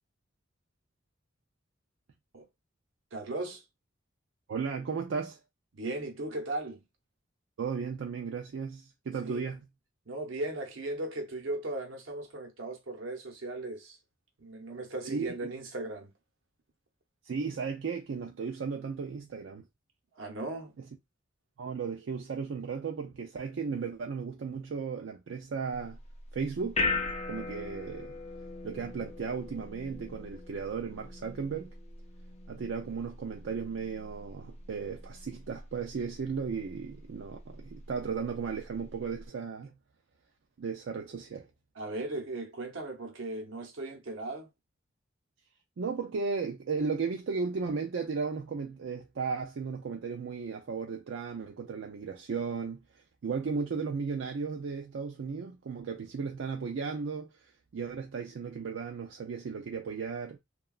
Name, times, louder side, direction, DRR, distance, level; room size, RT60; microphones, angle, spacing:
voice 1, 3.1-3.6 5.7-6.8 9.2-9.4 10.1-14.0 14.4-16.1 20.1-20.7 41.7-44.5, right 2 dB, 90° right, 0.8 m, -37 dB
voice 2, 4.5-5.4 7.6-9.6 15.0-15.3 17.2-19.6 21.6-26.0 26.3-26.8 27.3-28.1 28.6-31.7 32.5-39.7 40.6-41.5 45.8-57.3 57.7-60.4, right 5 dB, 70° right, 0.4 m, -35 dB
sound 1, 25.7-39.3, left 3 dB, 35° left, 0.4 m, -40 dB
2.9 x 2.2 x 2.3 m
head